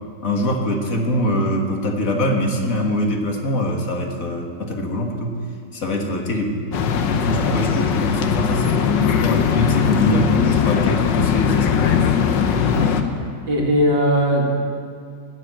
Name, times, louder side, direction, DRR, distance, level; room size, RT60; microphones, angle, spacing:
voice 1, 0.2-5.4 5.7-6.6 7.1-12.0, left 1 dB, 50° left, 2 dB, 2.0 m, -23 dB
sound 1, 6.7-13.0, left 7 dB, 80° left, 1.6 m, -19 dB
voice 2, 13.5-14.5, equal, 85° right, -2 dB, 2.9 m, -19 dB
20.0 x 7.8 x 7.6 m, 2.2 s
omnidirectional pair, 1.9 m